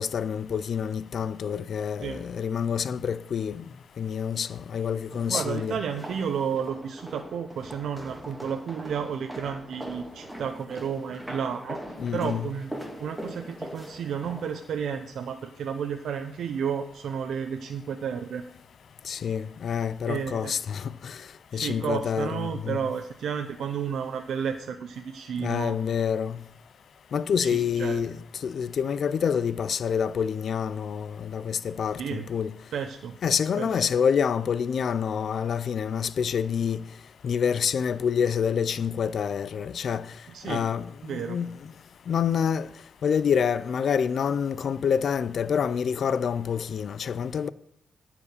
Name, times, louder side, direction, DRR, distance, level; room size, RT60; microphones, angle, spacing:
voice 1, 0.0-3.6 4.0-5.8 12.0-12.5 19.0-21.2 21.5-22.8 25.4-26.4 27.1-28.2 28.4-32.5 33.2-36.8 37.2-40.1 40.5-41.5 42.1-42.7 43.0-47.5, left 7 dB, 65° left, 0.4 m, -27 dB
sound 1, 5.1-14.7, equal, 5° right, 2.0 m, -41 dB
voice 2, 5.3-11.8 12.1-12.7 13.0-18.4 20.1-20.5 21.5-25.8 27.4-28.1 32.0-32.2 32.7-33.1 33.6-33.7 40.3-40.6 41.0-41.4, right 7 dB, 85° right, 0.7 m, -32 dB
15.0 x 5.0 x 6.7 m
cardioid pair, 100°, 0 cm